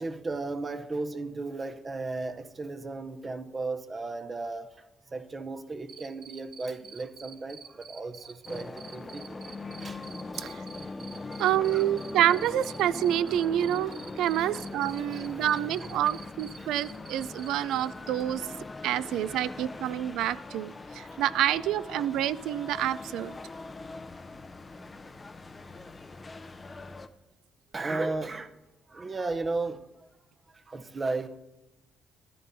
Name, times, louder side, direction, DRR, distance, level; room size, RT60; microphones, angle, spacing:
voice 1, 0.0-4.7 5.1-9.4 9.8-10.0 10.3-10.5 11.2-11.4 11.7-11.8 14.1-14.5 15.1-16.2 16.6-16.7 22.0-22.1 27.7-28.5 28.9-29.9 30.5-31.3, right 3 dB, 30° right, 0.7 m, -35 dB
Cricket, 5.9-17.9, right 6 dB, 60° right, 1.0 m, -47 dB
sound 1, 8.5-27.1, left 3 dB, 25° left, 0.5 m, -41 dB
voice 2, 11.4-18.5 18.8-23.3, right 12 dB, 90° right, 0.3 m, -28 dB
14.0 x 11.0 x 2.7 m
cardioid pair, 90°, 0 cm